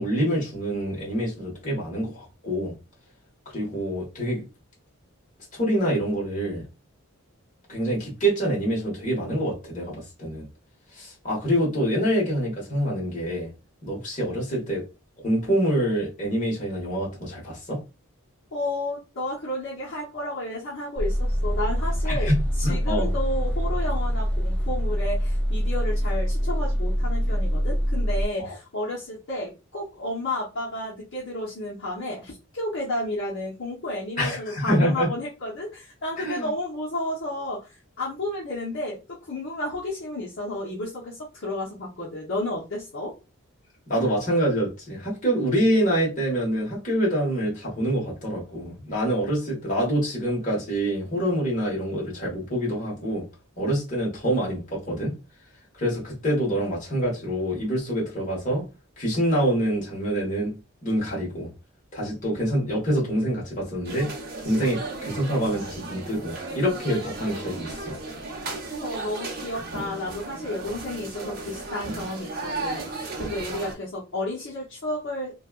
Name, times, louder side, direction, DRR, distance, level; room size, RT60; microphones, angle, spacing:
voice 1, 0.0-2.7 3.5-4.4 5.5-6.7 7.7-10.5 10.9-13.5 13.8-14.8 15.2-17.8 22.0-22.4 22.6-23.1 28.4-28.5 34.2-35.1 36.2-36.5 43.9-53.2 53.6-55.1 55.8-58.6 59.0-60.5 60.8-61.5 61.9-64.1 64.4-68.0, equal, 35° left, 1.4 m, -26 dB
voice 2, 18.5-22.3 22.6-39.0 39.3-43.1 68.8-75.3, left 1 dB, 60° left, 0.9 m, -32 dB
sound 1, 21.0-28.2, equal, 5° left, 0.5 m, -25 dB
sound 2, 63.8-73.7, right 3 dB, 45° right, 0.7 m, -35 dB
3.2 x 2.3 x 2.4 m
head